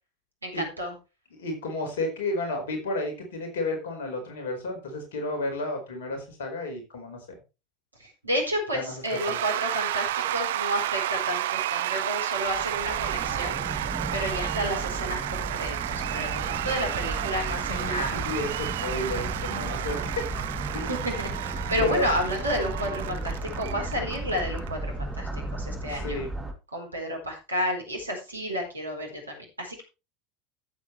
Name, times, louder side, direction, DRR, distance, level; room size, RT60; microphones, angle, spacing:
voice 1, 0.4-0.9 8.0-18.2 20.9-26.2 26.7-29.8, equal, 85° right, 2 dB, 4.1 m, -31 dB
voice 2, 1.3-7.4 8.7-9.4 17.7-20.0 20.7-21.0 21.8-22.1 25.8-26.3, left 2 dB, 65° left, 4 dB, 4.6 m, -32 dB
Cheering / Applause / Crowd, 9.1-24.7, right 13 dB, 65° right, 0.5 m, -31 dB
sound 1, 12.5-26.5, right 2 dB, 10° right, 2.8 m, -34 dB
14.0 x 8.0 x 3.3 m, 0.28 s
figure-of-eight pair, 75°, 0 cm